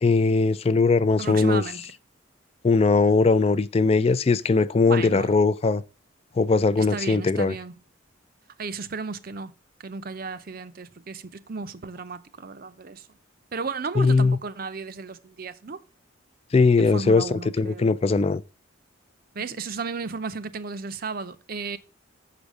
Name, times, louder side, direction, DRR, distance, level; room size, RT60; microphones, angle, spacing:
voice 1, 0.0-1.6 2.6-5.8 6.4-7.5 14.0-14.4 16.5-18.4, left 4 dB, 30° left, 0.3 m, -20 dB
voice 2, 1.2-1.9 4.9-5.4 6.8-7.7 8.6-9.5 9.8-13.1 13.5-15.8 16.8-17.9 19.3-21.8, right 4 dB, 45° right, 0.6 m, -34 dB
6.9 x 5.0 x 6.4 m
head